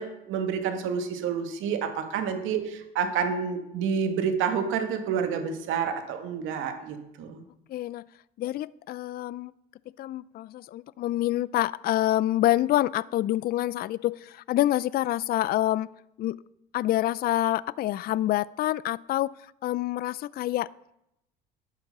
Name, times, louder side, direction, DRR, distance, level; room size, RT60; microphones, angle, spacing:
voice 1, 0.0-7.4, right 6 dB, 75° right, 6 dB, 2.1 m, -29 dB
voice 2, 7.7-8.1 8.4-9.5 10.0-15.9 16.2-16.4 16.7-19.3 19.6-20.7, left 14 dB, 50° left, 20 dB, 0.4 m, -27 dB
11.0 x 9.1 x 6.7 m, 0.84 s
cardioid pair, 100°, 21 cm